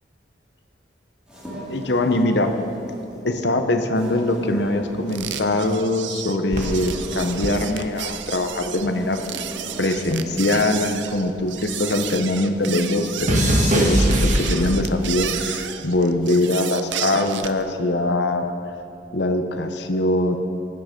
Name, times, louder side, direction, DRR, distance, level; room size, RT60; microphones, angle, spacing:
sound 1, 1.3-10.7, equal, 5° right, 3.2 m, -39 dB
voice 1, 1.7-2.5 3.2-9.2 9.8-18.5 19.1-20.4, left 2 dB, 65° left, 6 dB, 0.9 m, -22 dB
sound 2, 5.1-17.6, right 9 dB, 80° right, 0.7 m, -32 dB
sound 3, 6.5-9.0 9.3-11.9 12.2-15.0 15.8-16.1, equal, 40° right, 1.7 m, -23 dB
16.5 x 10.0 x 5.2 m, 2.6 s
head